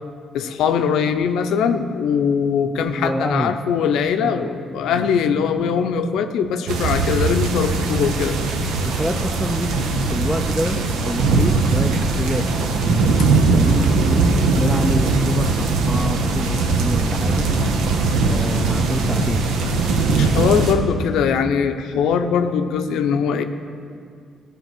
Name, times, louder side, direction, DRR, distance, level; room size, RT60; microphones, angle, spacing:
voice 1, 0.0-8.4 8.8-8.9 20.2-23.4, left 7 dB, 85° left, 8 dB, 0.6 m, -21 dB
voice 2, 3.0-3.6 4.2-5.1 8.8-14.2 14.5-17.5 18.2-19.4 20.1-20.6, equal, ahead, 5 dB, 0.5 m, -27 dB
sound 1, 6.7-20.7, right 3 dB, 85° right, 0.9 m, -20 dB
14.0 x 5.2 x 6.0 m, 2.2 s
cardioid pair, 90°, 0 cm